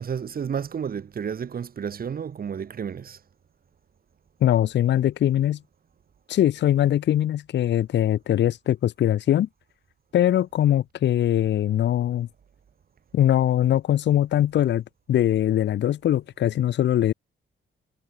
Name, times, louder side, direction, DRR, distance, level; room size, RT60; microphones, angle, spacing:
voice 1, 0.0-3.2, right 7 dB, 45° right, 1.4 m, -31 dB
voice 2, 4.4-5.6 6.3-9.5 10.1-12.3 13.1-14.8 15.1-17.1, left 11 dB, 60° left, 0.5 m, -21 dB
cardioid pair, 120°, 21 cm